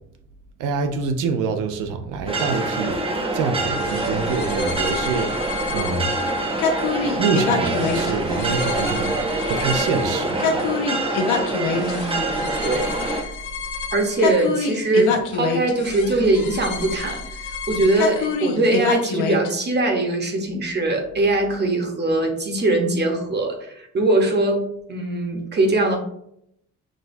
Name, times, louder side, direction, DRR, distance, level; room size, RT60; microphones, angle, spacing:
voice 1, 0.6-6.1 7.2-10.7, right 5 dB, 90° right, 0.6 m, -26 dB
sound 1, 2.3-13.2, right 2 dB, 20° right, 0.6 m, -25 dB
sound 2, 3.8-19.5, left 4 dB, 85° left, 0.6 m, -27 dB
voice 2, 11.7-13.0 13.9-26.0, right 2 dB, 35° right, 0.9 m, -22 dB
6.1 x 2.2 x 2.6 m
cardioid pair, 90°, 30 cm